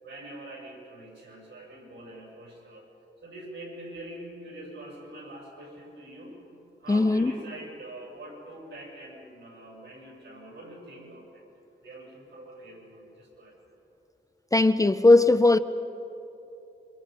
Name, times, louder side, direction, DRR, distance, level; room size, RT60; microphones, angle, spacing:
voice 1, 0.0-2.9 3.2-6.4 6.8-11.4 11.8-13.6, right 1 dB, 75° right, 7.6 m, -44 dB
voice 2, 6.9-7.3 14.5-15.6, left 2 dB, 15° left, 0.4 m, -18 dB
27.0 x 25.5 x 5.5 m
wide cardioid pair, 160°, 20 cm